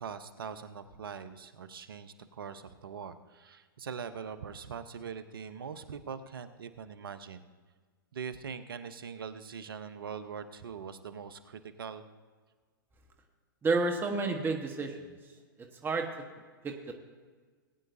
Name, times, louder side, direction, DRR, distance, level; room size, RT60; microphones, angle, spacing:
voice 1, 0.0-7.4 8.1-12.0, right 6 dB, 75° right, 11 dB, 0.9 m, -42 dB
voice 2, 13.6-15.0 15.8-16.1 16.6-16.9, right 3 dB, 15° right, 3 dB, 1.2 m, -30 dB
20.5 x 9.5 x 2.7 m, 1.5 s
hypercardioid pair, 110°, 12 cm